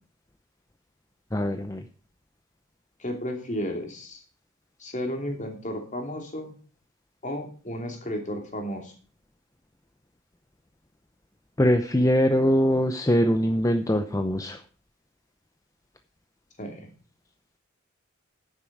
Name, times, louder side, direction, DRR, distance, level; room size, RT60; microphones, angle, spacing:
voice 1, 1.3-1.8 11.6-14.6, equal, 15° left, 8 dB, 0.7 m, -22 dB
voice 2, 3.0-4.2 4.8-6.5 7.2-8.9 16.6-16.9, equal, 35° left, 3 dB, 2.8 m, -33 dB
10.5 x 9.3 x 4.8 m, 0.39 s
head